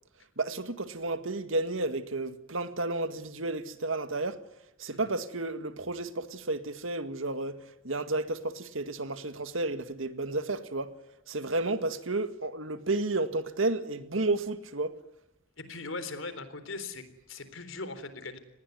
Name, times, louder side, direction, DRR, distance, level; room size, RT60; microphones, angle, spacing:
voice 1, 0.4-4.4 4.8-10.9 11.3-14.9, right 2 dB, 80° right, 1.9 m, -32 dB
voice 2, 15.6-18.4, left 3 dB, 80° left, 3.8 m, -39 dB
27.5 x 20.0 x 9.5 m
head